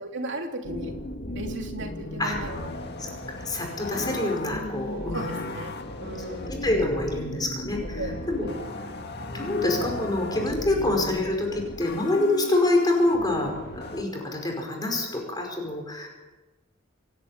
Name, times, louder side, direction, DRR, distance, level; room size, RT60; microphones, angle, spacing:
voice 1, 0.0-2.7 3.9-4.1 5.1-5.7 6.0-6.7 8.0-8.6, right 1 dB, 65° right, 2 dB, 3.3 m, -36 dB
sound 1, 0.6-14.0, left 1 dB, 55° left, 2.0 m, -36 dB
voice 2, 3.0-5.2 6.0-6.1 6.5-8.5 9.3-16.1, left 2 dB, 20° left, 1 dB, 5.0 m, -26 dB
27.0 x 11.0 x 9.1 m, 1.2 s
head